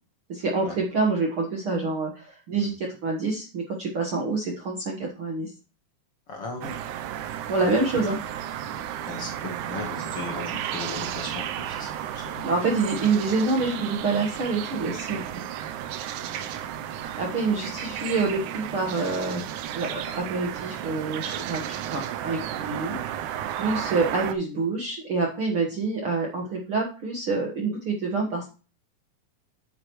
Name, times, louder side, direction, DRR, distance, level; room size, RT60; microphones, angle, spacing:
voice 1, 0.3-5.5 7.5-8.2 12.4-15.2 17.2-19.4 19.7-23.0 23.5-28.5, right 3 dB, 55° right, 0 dB, 1.6 m, -27 dB
voice 2, 6.3-6.8 9.0-9.3 9.7-12.5, left 3 dB, 55° left, 1 dB, 1.8 m, -37 dB
sound 1, 6.6-24.3, right 10 dB, 80° right, 1.8 m, -33 dB
8.7 x 8.1 x 3.1 m, 0.34 s
omnidirectional pair, 4.2 m